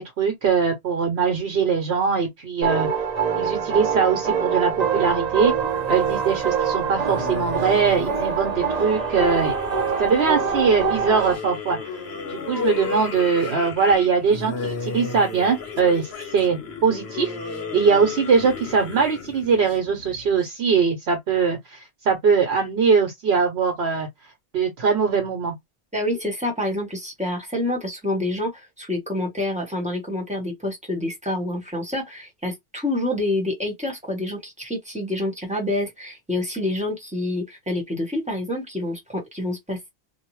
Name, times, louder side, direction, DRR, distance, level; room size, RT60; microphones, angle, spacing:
voice 1, 0.0-2.9 3.3-5.5 5.9-9.5 10.0-11.8 12.3-17.4 17.7-24.1 24.5-25.5, right 5 dB, 75° right, 1.0 m, -21 dB
sound 1, 2.6-11.3, right 6 dB, 40° right, 0.8 m, -24 dB
sound 2, 5.6-20.5, left 4 dB, 75° left, 1.2 m, -34 dB
voice 2, 25.9-39.9, left 1 dB, 5° right, 1.0 m, -27 dB
2.7 x 2.1 x 3.0 m
omnidirectional pair, 1.1 m